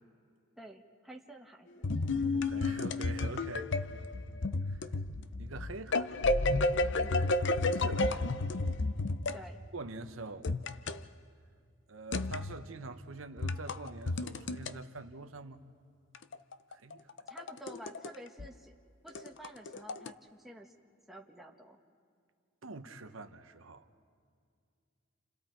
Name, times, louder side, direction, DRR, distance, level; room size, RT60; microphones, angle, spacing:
voice 1, 0.6-2.4 6.9-7.3 9.3-9.6 17.3-18.7 19.0-20.7 21.1-21.8, right 1 dB, ahead, 1.4 m, -50 dB
sound 1, 1.8-9.4 10.4-11.0 12.1-12.6 13.4-14.7 16.1-18.1 18.4-18.5 19.1-20.1, left 2 dB, 60° left, 0.6 m, -32 dB
voice 2, 2.3-3.7 4.7-4.9 5.4-6.1 7.6-8.3 9.7-10.5 11.9-15.6 16.7-17.0 22.6-23.9, right 3 dB, 85° right, 1.0 m, -45 dB
29.5 x 28.0 x 4.6 m
head